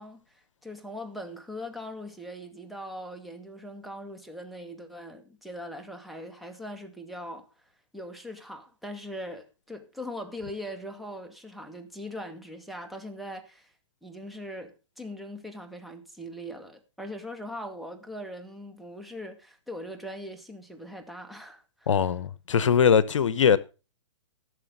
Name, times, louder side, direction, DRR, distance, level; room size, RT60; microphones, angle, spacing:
voice 1, 0.0-7.5 7.9-13.7 14.0-22.0, equal, ahead, 2.1 m, -40 dB
voice 2, 21.9-23.6, left 7 dB, 75° left, 0.9 m, -21 dB
16.0 x 6.6 x 5.4 m
hypercardioid pair, 130°, 16 cm